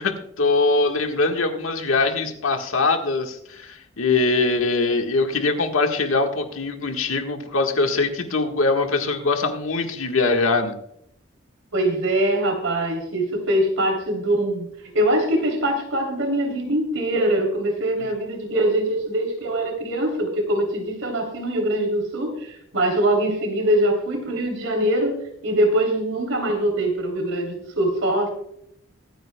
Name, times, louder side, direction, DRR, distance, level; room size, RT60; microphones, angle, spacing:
voice 1, 0.0-10.8, left 3 dB, 85° left, 4 dB, 1.5 m, -22 dB
voice 2, 11.7-14.7 14.9-28.3, right 1 dB, 80° right, 2 dB, 3.1 m, -23 dB
23.5 x 9.5 x 2.2 m, 0.74 s
head